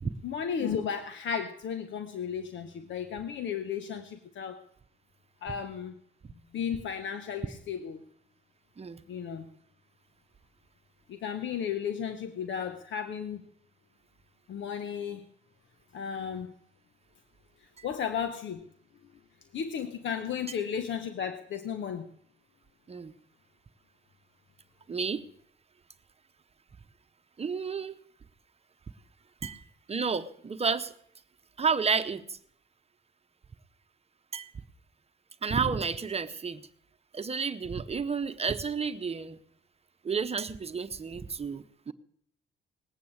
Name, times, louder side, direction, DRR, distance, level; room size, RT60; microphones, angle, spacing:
voice 1, 0.2-4.6 5.4-5.9 6.5-8.0 9.1-9.5 11.1-13.4 14.5-15.2 15.9-16.5 17.8-18.6 19.5-22.1, left 7 dB, 70° left, 8 dB, 1.2 m, -34 dB
voice 2, 24.9-25.2 27.4-27.9 29.4-29.6 29.9-30.9 31.6-32.4 34.3-34.5 35.4-36.6 37.1-39.4 40.0-41.9, right 5 dB, 30° right, 10 dB, 1.0 m, -31 dB
19.5 x 8.6 x 8.0 m, 0.66 s
cardioid pair, 90°, 20 cm